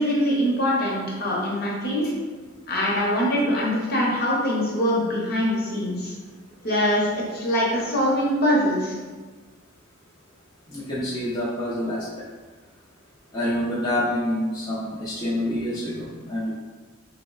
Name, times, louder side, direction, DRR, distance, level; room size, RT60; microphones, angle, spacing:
voice 1, 0.0-2.1 2.7-6.1 6.6-9.0, equal, 50° left, -4 dB, 0.8 m, -23 dB
voice 2, 10.7-12.0 13.3-16.6, left 1 dB, 20° left, -9 dB, 0.5 m, -27 dB
3.1 x 2.1 x 3.8 m, 1.4 s
head